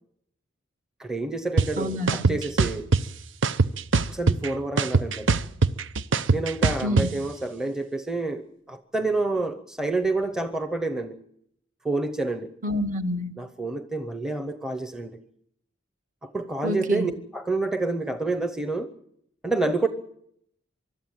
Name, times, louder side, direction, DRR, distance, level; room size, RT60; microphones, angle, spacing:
voice 1, 1.0-2.9 4.1-5.3 6.3-11.2 11.8-12.5 13.4-15.2 16.2-18.9 19.4-19.9, right 2 dB, 5° right, 9 dB, 0.9 m, -28 dB
sound 1, 1.6-1.7 2.1-3.0 3.4-4.5 4.8-7.1, right 4 dB, 75° right, 0.8 m, -21 dB
voice 2, 1.8-2.4 6.8-7.1 12.6-13.3 16.6-17.1, left 1 dB, 45° right, 6 dB, 1.6 m, -28 dB
24.5 x 13.0 x 8.9 m, 0.73 s
head